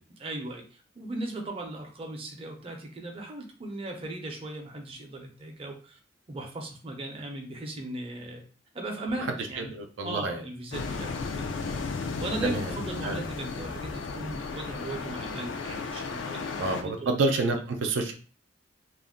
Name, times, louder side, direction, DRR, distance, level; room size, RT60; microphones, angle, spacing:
voice 1, 0.2-6.0 6.3-8.4 8.7-9.7 10.0-11.5 12.2-17.1, right 1 dB, 30° right, 1 dB, 0.5 m, -37 dB
voice 2, 9.6-10.4 12.4-12.6 13.0-13.2 16.6-18.1, right 2 dB, 80° right, 4 dB, 0.5 m, -28 dB
sound 1, 10.7-16.8, left 4 dB, 75° left, 0.4 m, -34 dB
2.4 x 2.1 x 3.6 m, 0.40 s
head